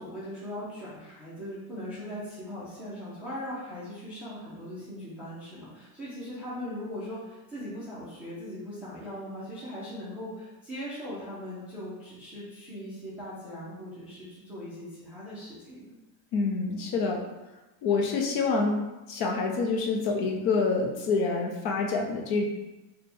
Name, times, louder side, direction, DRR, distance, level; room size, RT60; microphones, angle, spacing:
voice 1, 0.0-15.9, equal, 5° right, -10 dB, 0.4 m, -39 dB
voice 2, 16.3-17.2 17.8-18.8 19.1-22.4, left 4 dB, 50° left, 1 dB, 0.6 m, -27 dB
4.2 x 2.3 x 3.3 m, 1.1 s
cardioid pair, 160°, 50 cm